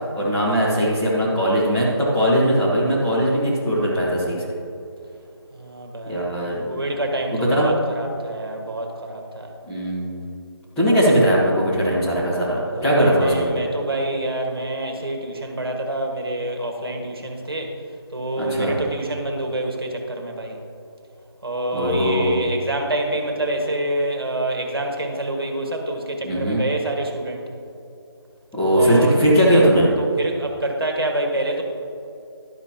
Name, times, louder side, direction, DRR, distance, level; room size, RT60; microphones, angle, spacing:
voice 1, 0.1-4.5 6.1-6.6 7.3-7.7 9.6-10.3 10.8-13.7 18.4-18.8 21.7-22.4 26.2-26.6 28.5-29.9, equal, 5° left, -10 dB, 1.4 m, -19 dB
voice 2, 5.5-6.3 6.7-9.5 12.7-17.7 18.1-20.6 21.4-27.5 28.7-29.1 30.0-31.6, right 1 dB, 60° right, 2 dB, 1.6 m, -27 dB
12.0 x 9.7 x 2.9 m, 2.8 s
figure-of-eight pair, 160°, 14 cm